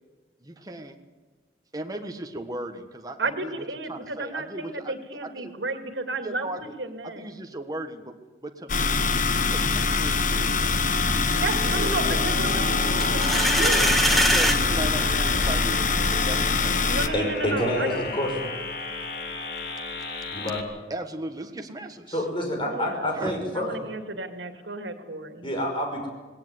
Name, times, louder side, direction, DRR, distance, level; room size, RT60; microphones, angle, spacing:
voice 1, 0.4-1.0 1.7-4.9 5.2-5.8 6.2-6.6 7.0-8.1 8.4-9.1 9.5-10.7 12.1-12.2 12.9-13.1 13.5-16.8 20.9-22.2 23.1-23.3, right 1 dB, 20° right, 5 dB, 1.5 m, -37 dB
voice 2, 3.2-6.5 6.8-7.3 11.3-14.0 16.8-18.1 22.6-23.1 23.5-25.5, right 3 dB, 80° right, 7 dB, 2.5 m, -32 dB
sound 1, 8.7-17.1, left 4 dB, 45° left, 1.2 m, -24 dB
sound 2, 10.6-20.6, left 2 dB, 60° left, 3.1 m, -34 dB
sound 3, 13.0-14.6, right 1 dB, ahead, 1.6 m, -22 dB
voice 3, 17.1-18.5 20.3-20.6 22.1-23.7 25.4-26.1, left 1 dB, 30° left, 2 dB, 5.6 m, -27 dB
19.0 x 18.0 x 9.6 m, 1.3 s
head